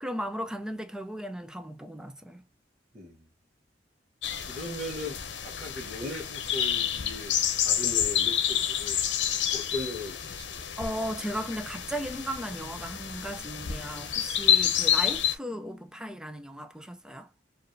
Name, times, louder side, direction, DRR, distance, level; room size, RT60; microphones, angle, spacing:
voice 1, 0.0-2.4 10.8-17.3, equal, 5° right, 0.4 m, -36 dB
voice 2, 2.9-3.3 4.4-7.3 7.6-9.0 9.5-10.7, left 1 dB, 40° right, 1.0 m, -38 dB
sound 1, 4.2-15.3, left 9 dB, 80° left, 0.7 m, -29 dB
4.7 x 2.6 x 2.6 m
head